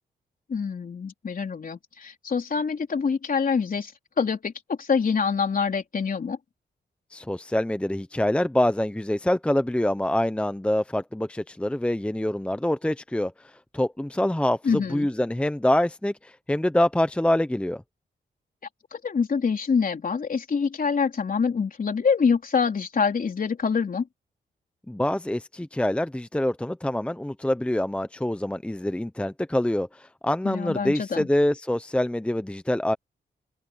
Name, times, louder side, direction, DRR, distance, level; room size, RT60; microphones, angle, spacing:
voice 1, 0.5-6.4 14.6-15.1 18.9-24.1 30.4-31.3, left 5 dB, 50° left, 3.7 m, -25 dB
voice 2, 7.1-13.3 13.7-17.8 24.9-33.0, left 1 dB, 5° left, 0.8 m, -25 dB
open air
cardioid pair, 85°, 18 cm